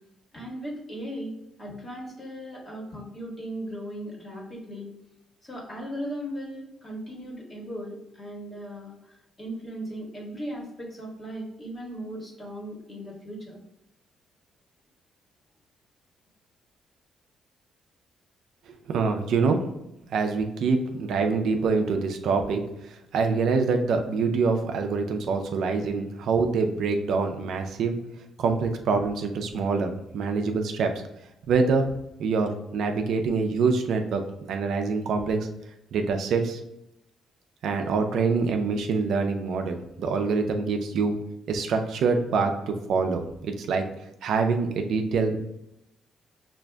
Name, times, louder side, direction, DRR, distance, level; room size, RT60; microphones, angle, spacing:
voice 1, 0.3-4.9 5.4-13.6, equal, 30° left, -3 dB, 1.4 m, -37 dB
voice 2, 18.9-19.6 20.1-28.0 28.4-31.0 31.5-31.9 32.2-34.2 34.5-35.5 35.9-36.6 37.6-41.1 41.5-43.9 44.2-45.4, right 4 dB, 75° right, 5 dB, 0.4 m, -25 dB
6.0 x 2.5 x 2.3 m, 0.85 s
cardioid pair, 90°, 0 cm